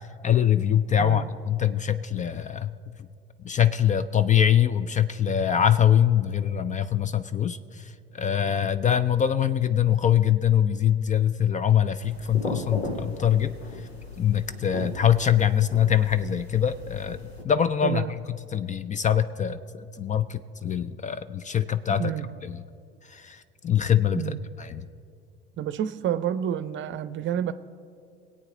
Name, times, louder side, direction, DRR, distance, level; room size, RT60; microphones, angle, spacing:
voice 1, 0.2-2.7 3.4-13.9 14.2-18.2 18.5-22.1 22.4-22.6 23.0-24.3 24.6-24.9, left 9 dB, 25° left, 13 dB, 0.5 m, -23 dB
sound 1, 12.0-17.4, left 2 dB, 90° left, 1.1 m, -37 dB
voice 2, 21.9-22.3 24.2-24.4 25.6-27.5, right 10 dB, 40° right, 13 dB, 0.7 m, -29 dB
23.5 x 8.7 x 3.8 m, 2.3 s
figure-of-eight pair, 65°, 31 cm